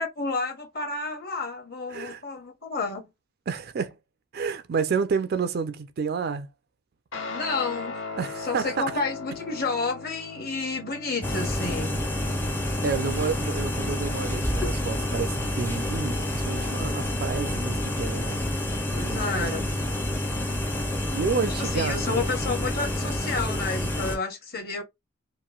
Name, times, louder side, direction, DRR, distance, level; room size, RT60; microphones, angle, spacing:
voice 1, 0.0-3.1 7.3-8.0 8.4-11.9 18.9-19.7 21.6-24.8, left 3 dB, 45° left, 1.1 m, -30 dB
voice 2, 1.9-2.2 3.5-4.0 4.3-6.5 8.2-9.0 12.8-18.4 19.0-19.7 21.1-22.3, right 5 dB, 45° right, 0.4 m, -30 dB
Guitar, 7.1-15.9, left 4 dB, 70° left, 1.0 m, -40 dB
sound 1, 11.2-24.2, left 1 dB, 10° left, 0.5 m, -28 dB
3.0 x 2.5 x 2.3 m
head